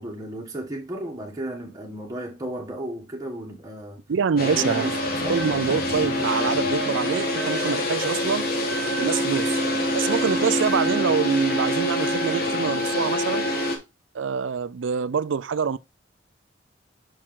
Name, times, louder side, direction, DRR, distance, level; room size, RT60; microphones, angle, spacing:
voice 1, 0.0-4.0 4.3-5.4, right 1 dB, 20° right, 1.5 m, -34 dB
voice 2, 4.1-4.9 5.3-8.5 8.9-9.5 9.9-13.5 14.1-15.8, right 6 dB, 85° right, 0.4 m, -25 dB
sound 1, 4.4-13.8, left 1 dB, 55° left, 1.5 m, -25 dB
6.1 x 4.4 x 3.7 m
head